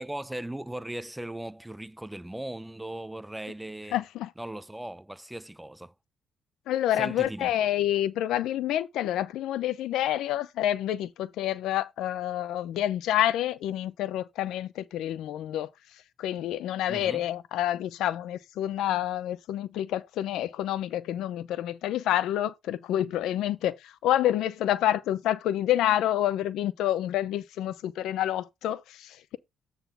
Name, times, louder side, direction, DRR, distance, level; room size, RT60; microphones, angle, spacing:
voice 1, 0.0-4.0 4.4-5.9 6.9-7.5 16.9-17.3, right 1 dB, 5° right, 0.6 m, -38 dB
voice 2, 3.9-4.3 6.7-15.7 16.2-29.4, left 12 dB, 85° left, 0.7 m, -28 dB
9.2 x 3.9 x 5.4 m
cardioid pair, 95°, 0 cm